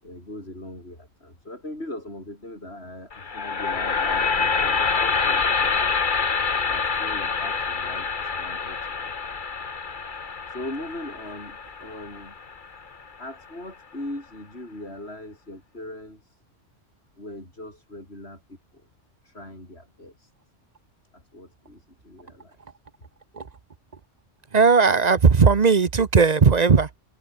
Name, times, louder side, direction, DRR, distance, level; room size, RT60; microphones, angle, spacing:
voice 1, 0.0-6.0 6.7-9.1 10.2-12.3 12.8-16.4 17.2-18.9 19.2-20.3 21.1-22.6, left 1 dB, 60° left, 8.1 m, -40 dB
sound 1, 3.1-13.2, left 5 dB, 45° left, 1.4 m, -26 dB
voice 2, 24.5-26.9, right 5 dB, 40° right, 1.0 m, -17 dB
omnidirectional pair, 1.2 m